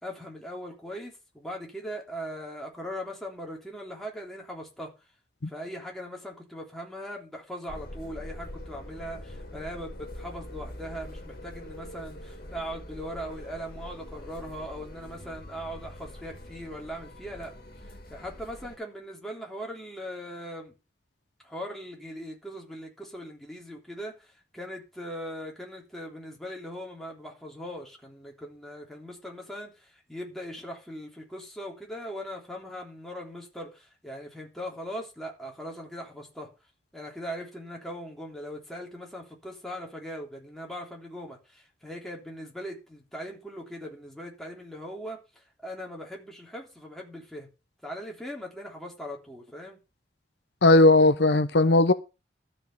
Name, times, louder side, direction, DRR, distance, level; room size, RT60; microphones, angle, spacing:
voice 1, 0.0-4.9 5.5-17.5 17.8-20.7 21.4-36.5 36.9-47.5 47.8-49.8, equal, ahead, 3.4 m, -40 dB
sound 1, 7.7-18.8, left 1 dB, 55° left, 2.6 m, -43 dB
voice 2, 50.6-51.9, left 2 dB, 75° left, 0.8 m, -17 dB
13.0 x 5.5 x 6.9 m
head